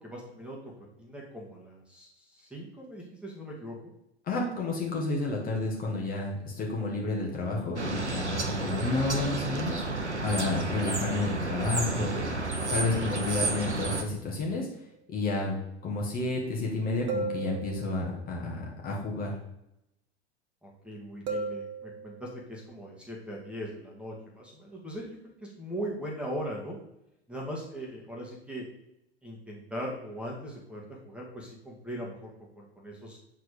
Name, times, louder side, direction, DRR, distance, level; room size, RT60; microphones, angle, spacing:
voice 1, 0.0-3.9 20.6-26.8 27.3-28.6 29.2-32.3 32.6-33.2, equal, 5° right, -3 dB, 2.1 m, -40 dB
voice 2, 4.3-9.8 10.2-14.7 15.1-19.3, left 2 dB, 25° left, -2 dB, 2.0 m, -31 dB
sound 1, 7.8-14.0, right 3 dB, 90° right, 0.9 m, -31 dB
sound 2, 14.7-14.8 17.1-18.2 21.3-22.4, right 3 dB, 35° right, 1.4 m, -35 dB
8.0 x 4.6 x 5.0 m, 0.83 s
figure-of-eight pair, 85°, 33 cm